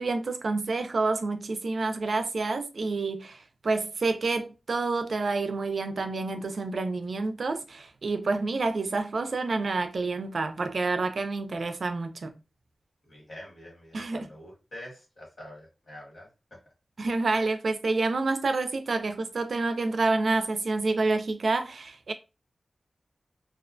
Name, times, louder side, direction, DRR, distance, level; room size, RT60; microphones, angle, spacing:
voice 1, 0.0-12.3 13.9-14.3 17.0-22.1, right 3 dB, 75° right, 0.3 m, -28 dB
voice 2, 13.0-16.6, left 1 dB, 65° left, 1.3 m, -46 dB
2.3 x 2.1 x 2.5 m
wide cardioid pair, 70°, 0 cm